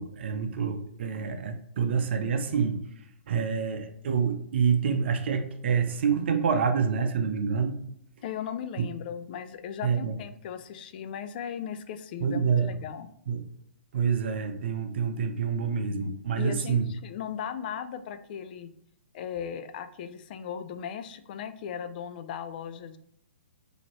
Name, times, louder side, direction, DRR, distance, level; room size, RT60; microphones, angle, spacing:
voice 1, 0.0-7.8 9.8-10.2 12.2-12.7 13.3-13.5 13.9-16.9, right 6 dB, 60° right, 6 dB, 0.6 m, -27 dB
voice 2, 8.2-13.1 16.4-18.7 19.1-23.0, left 8 dB, 45° left, 10 dB, 0.4 m, -37 dB
4.2 x 2.8 x 3.0 m, 0.74 s
hypercardioid pair, 125°, 7 cm